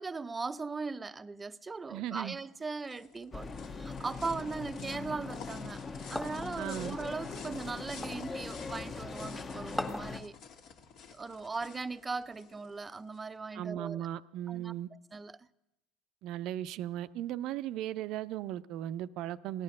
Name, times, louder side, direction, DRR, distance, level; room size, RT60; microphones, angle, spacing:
voice 1, 0.0-5.8 6.1-10.3 11.1-14.0 14.5-14.7 15.1-15.5, right 4 dB, 20° right, 0.6 m, -39 dB
voice 2, 1.9-2.4 6.6-7.0 13.5-14.9 16.2-19.6, right 12 dB, 55° right, 0.6 m, -37 dB
sound 1, 2.4-13.2, left 6 dB, 55° left, 1.8 m, -50 dB
sound 2, 3.3-10.2, left 4 dB, 30° left, 1.3 m, -41 dB
sound 3, 6.2-6.6 8.0-8.3 9.8-10.2, left 1 dB, 10° left, 1.7 m, -37 dB
17.0 x 11.5 x 6.5 m
hypercardioid pair, 70°, 0 cm